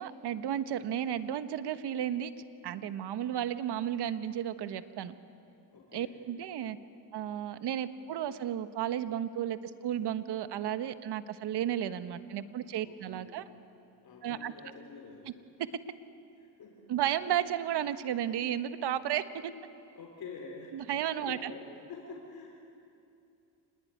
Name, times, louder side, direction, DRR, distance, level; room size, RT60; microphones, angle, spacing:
voice 1, 0.0-2.3 2.6-5.1 5.9-6.8 7.1-13.5 14.2-14.5 16.9-19.5 20.7-21.5, right 10 dB, 60° right, 11 dB, 1.4 m, -33 dB
voice 2, 5.7-6.1 12.8-13.4 14.0-15.2 16.6-16.8 19.9-20.7 21.2-22.6, left 4 dB, 50° left, 0 dB, 4.2 m, -47 dB
26.0 x 20.0 x 9.5 m, 2.6 s
supercardioid pair, 85°, 46 cm